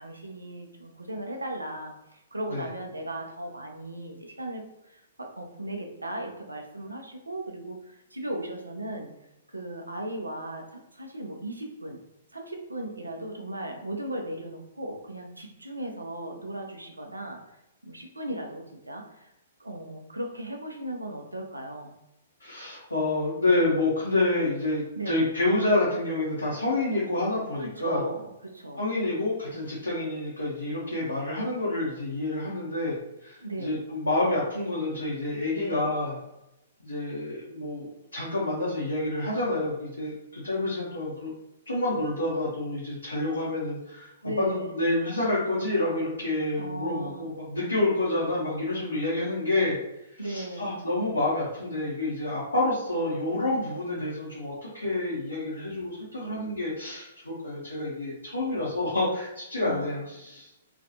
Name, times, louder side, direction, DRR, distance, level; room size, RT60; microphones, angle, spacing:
voice 1, 0.0-9.1 9.5-12.0 12.3-17.4 17.8-19.3 19.6-22.0 24.9-25.2 27.6-28.9 33.4-33.8 35.5-35.9 44.2-44.7 46.6-47.3 50.2-50.7 59.6-60.0, right 1 dB, 85° right, 3 dB, 0.5 m, -37 dB
voice 2, 22.4-28.0 28.8-33.0 33.2-36.2 36.8-41.3 41.7-44.1 44.4-49.8 50.1-60.5, left 2 dB, 80° left, -7 dB, 0.7 m, -28 dB
2.4 x 2.2 x 2.6 m, 0.89 s
figure-of-eight pair, 115°, 0 cm